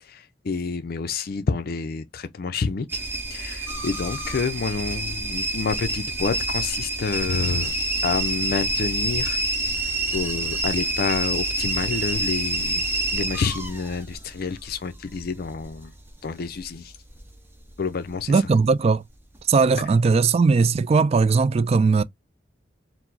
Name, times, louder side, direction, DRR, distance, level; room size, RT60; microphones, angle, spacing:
voice 1, 0.0-3.0 3.3-7.7 8.0-9.4 9.8-12.8 13.1-15.9 16.2-16.9 17.8-18.3 19.7-19.8, left 4 dB, 55° left, 0.5 m, -28 dB
sound 1, 2.9-17.8 18.0-18.7 19.2-19.7 20.1-20.2, right 2 dB, 10° right, 0.7 m, -28 dB
voice 2, 18.3-19.0 19.5-22.0, right 4 dB, 35° right, 0.3 m, -19 dB
4.7 x 2.0 x 3.8 m
head